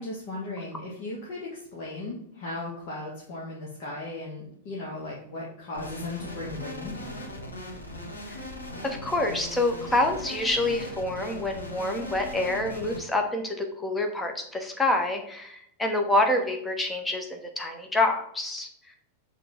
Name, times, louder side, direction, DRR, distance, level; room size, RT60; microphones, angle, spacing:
voice 1, 0.0-7.0, left 2 dB, 45° left, -4 dB, 1.5 m, -36 dB
sound 1, 5.7-13.0, left 1 dB, 80° left, 1.7 m, -39 dB
voice 2, 8.8-19.0, left 2 dB, 10° left, 3 dB, 1.2 m, -27 dB
6.4 x 3.8 x 4.9 m, 0.70 s
figure-of-eight pair, 90°, 0 cm